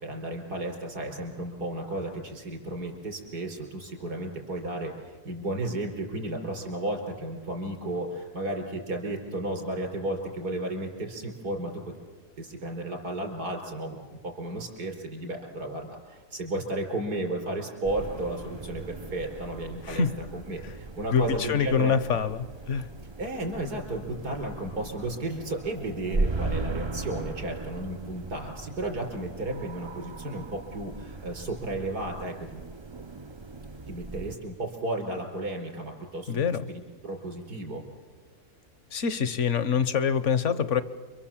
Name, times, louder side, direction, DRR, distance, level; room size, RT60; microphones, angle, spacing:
voice 1, 0.0-11.9 12.4-14.0 14.2-20.0 20.3-22.2 23.2-32.6 33.9-37.8, right 1 dB, 85° right, 2 dB, 5.2 m, -33 dB
sound 1, 17.8-34.3, right 3 dB, 35° right, 0.4 m, -37 dB
voice 2, 19.8-20.2 21.1-22.9 36.3-36.6 38.9-40.8, left 6 dB, 55° left, 14 dB, 1.3 m, -25 dB
29.0 x 24.0 x 7.4 m, 1.5 s
omnidirectional pair, 1.6 m